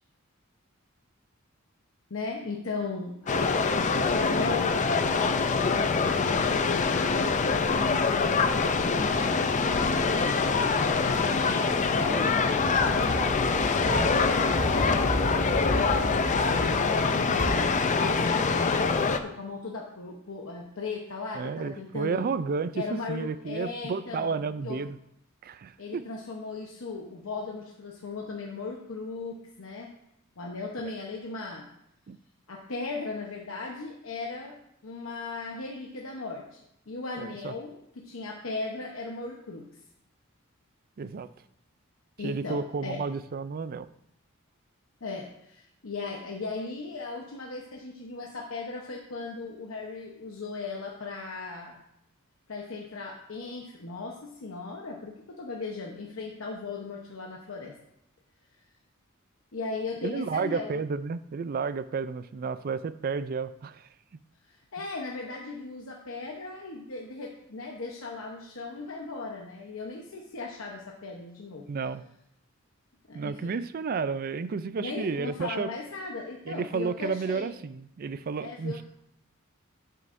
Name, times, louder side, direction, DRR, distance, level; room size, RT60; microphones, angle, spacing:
voice 1, 2.1-3.5 4.1-10.4 11.0-12.6 12.9-13.3 16.3-22.3 22.7-24.8 25.8-29.9 30.4-31.7 32.5-34.6 34.8-36.6 36.9-39.7 42.2-43.0 45.0-51.8 52.5-57.7 59.5-60.8 64.5-71.7 73.1-73.5 74.8-77.5 78.4-78.8, left 4 dB, 70° left, -1 dB, 0.9 m, -37 dB
sound 1, 3.3-19.2, left 4 dB, 35° left, 0.5 m, -25 dB
sound 2, 12.6-16.8 17.4-17.5, equal, 10° right, 2.7 m, -33 dB
voice 2, 21.3-25.0 25.4-26.0 32.1-32.2 37.2-37.5 41.0-41.3 42.2-43.9 60.0-63.9 71.7-72.0 73.1-75.7 76.5-78.8, right 5 dB, 45° right, 14 dB, 0.4 m, -32 dB
11.5 x 6.5 x 2.6 m, 0.78 s
head